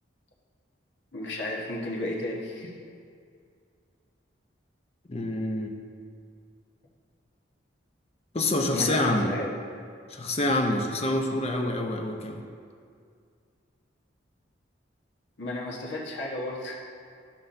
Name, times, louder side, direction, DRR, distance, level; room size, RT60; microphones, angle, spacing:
voice 1, 1.1-2.7 8.7-9.5 15.4-16.8, left 1 dB, 70° left, -3 dB, 1.2 m, -33 dB
voice 2, 5.1-5.7 8.3-9.3 10.1-12.4, left 1 dB, 30° left, 2 dB, 0.7 m, -27 dB
13.0 x 5.6 x 2.6 m, 2.2 s
head